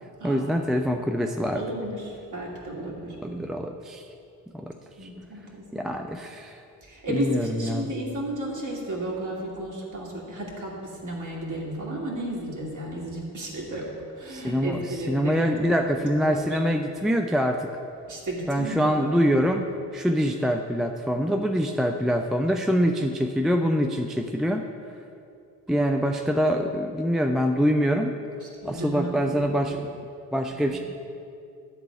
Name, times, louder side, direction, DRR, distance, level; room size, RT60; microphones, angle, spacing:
voice 1, 0.2-1.6 3.2-4.0 4.5-4.8 5.0-5.1 5.7-6.6 7.1-7.9 14.3-17.7 18.5-19.7 19.9-24.7 25.7-28.1 28.6-29.9 30.3-30.8, equal, ahead, 4 dB, 0.4 m, -25 dB
voice 2, 1.5-3.5 5.0-5.9 6.8-16.4 18.1-19.1 28.6-29.7 30.7-30.8, right 1 dB, 35° right, -3 dB, 2.6 m, -33 dB
12.0 x 4.0 x 7.6 m, 2.5 s
figure-of-eight pair, 45°, 49 cm